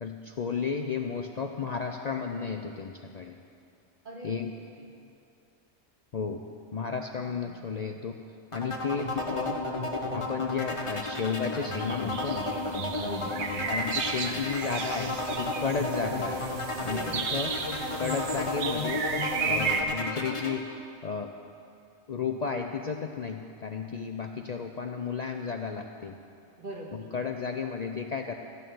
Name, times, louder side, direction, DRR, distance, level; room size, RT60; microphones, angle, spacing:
voice 1, 0.0-3.4 4.2-4.5 6.1-6.5 6.7-8.2 8.5-9.6 10.1-12.5 13.7-16.5 16.8-17.6 18.0-19.0 19.4-20.7 21.0-21.3 22.1-26.2 26.9-28.3, left 5 dB, 45° left, 4 dB, 0.6 m, -33 dB
voice 2, 4.0-4.4 4.8-4.9 7.3-7.5 12.9-13.6 16.8-17.4 26.6-27.0, right 1 dB, 50° right, -3 dB, 2.2 m, -41 dB
sound 1, 8.5-20.5, left 2 dB, 30° left, 1.1 m, -33 dB
sound 2, 11.0-11.4 11.7-19.8, right 5 dB, 80° right, 1.2 m, -34 dB
14.0 x 6.7 x 9.2 m, 2.5 s
omnidirectional pair, 1.1 m